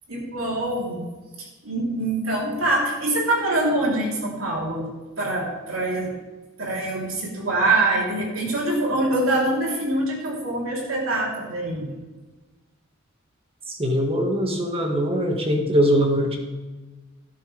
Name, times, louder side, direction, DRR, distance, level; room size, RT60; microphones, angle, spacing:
voice 1, 0.1-1.0 1.4-4.9 5.2-6.1 6.6-11.9, right 2 dB, 85° right, -3 dB, 3.4 m, -24 dB
voice 2, 13.7-16.4, equal, 30° right, 2 dB, 1.6 m, -22 dB
12.0 x 11.5 x 3.4 m, 1.2 s
head